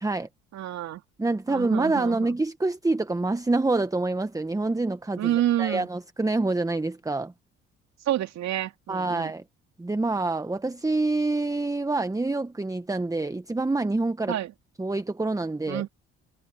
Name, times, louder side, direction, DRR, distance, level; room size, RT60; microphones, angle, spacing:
voice 1, 0.5-1.0 1.5-2.3 5.2-5.9 8.0-9.3 14.3-14.5 15.7-15.9, right 12 dB, 65° right, 2.8 m, -28 dB
voice 2, 1.2-5.3 5.6-7.3 8.9-9.4 9.8-14.4 14.8-15.8, right 2 dB, 10° right, 1.2 m, -26 dB
supercardioid pair, 65°, 30 cm